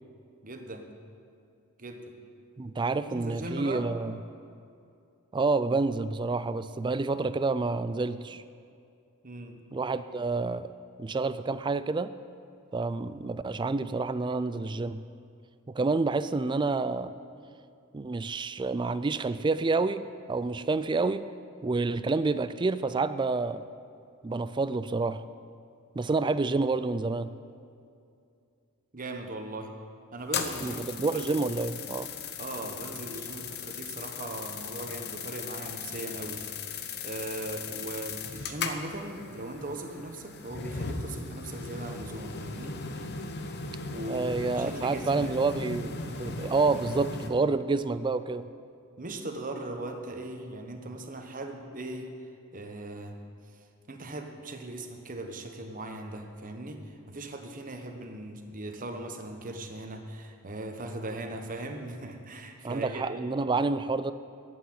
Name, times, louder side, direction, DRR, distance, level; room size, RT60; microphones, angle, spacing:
voice 1, 0.4-0.9 1.8-2.1 3.1-3.9 9.2-9.6 28.9-29.7 30.1-30.8 31.1-31.4 32.4-36.8 37.0-42.8 43.8-45.4 49.0-52.1 52.5-53.2 53.5-63.2, right 2 dB, 40° right, 4 dB, 1.2 m, -39 dB
voice 2, 2.6-4.2 5.3-8.4 9.7-10.7 11.0-12.1 12.7-15.0 15.7-17.1 17.9-21.2 21.6-23.6 24.2-25.2 26.0-27.3 30.6-32.1 44.1-48.5 62.6-64.1, right 3 dB, 20° right, 13 dB, 0.3 m, -28 dB
sound 1, 30.2-47.3, left 5 dB, 50° left, 0.9 m, -38 dB
11.5 x 8.4 x 9.3 m, 2.4 s
head